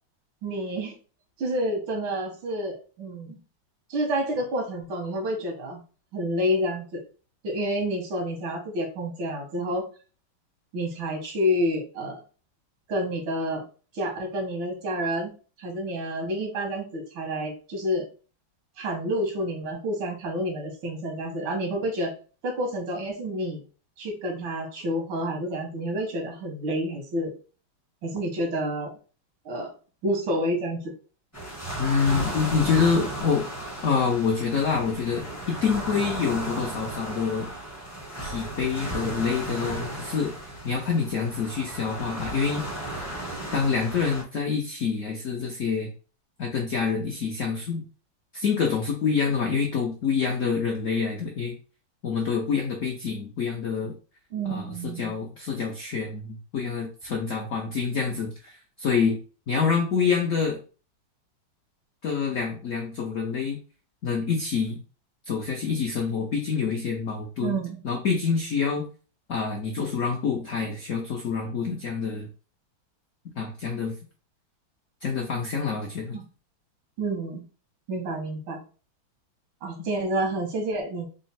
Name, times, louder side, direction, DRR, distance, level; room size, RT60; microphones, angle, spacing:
voice 1, 0.4-1.0 1.4-3.4 3.9-5.8 6.1-7.0 7.4-9.9 10.7-12.2 12.9-13.6 13.9-15.3 15.6-18.1 18.8-22.1 22.4-23.6 24.0-27.3 28.0-28.9 29.5-29.7 30.0-30.9 54.3-55.1 67.4-67.8 76.1-76.2 77.0-77.4 77.9-78.6 79.6-81.1, equal, 90° right, 2 dB, 1.8 m, -29 dB
sound 1, 31.3-44.2, right 1 dB, 15° left, 0.5 m, -35 dB
voice 2, 31.8-33.4 33.8-37.5 38.2-40.3 40.6-42.6 43.5-45.9 46.4-47.8 48.3-51.5 52.0-53.9 54.4-59.2 59.5-60.6 62.0-63.6 64.0-64.8 65.3-67.6 67.8-68.9 69.3-72.3 73.4-73.9 75.0-76.2, left 5 dB, 80° left, 1 dB, 0.7 m, -26 dB
4.0 x 2.0 x 4.0 m, 0.37 s
omnidirectional pair, 2.2 m